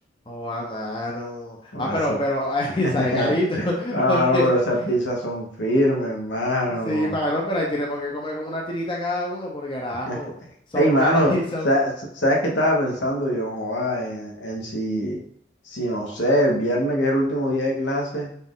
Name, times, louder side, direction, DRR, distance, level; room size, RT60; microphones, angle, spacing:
voice 1, 0.3-4.5 6.7-10.3 10.7-11.7, left 1 dB, 25° left, -2 dB, 0.6 m, -26 dB
voice 2, 1.7-2.2 3.0-3.6 3.9-7.2 10.1-10.2 10.7-11.3 11.6-15.2 15.6-18.3, equal, 75° left, -1 dB, 1.0 m, -23 dB
4.2 x 2.5 x 3.6 m, 0.69 s
head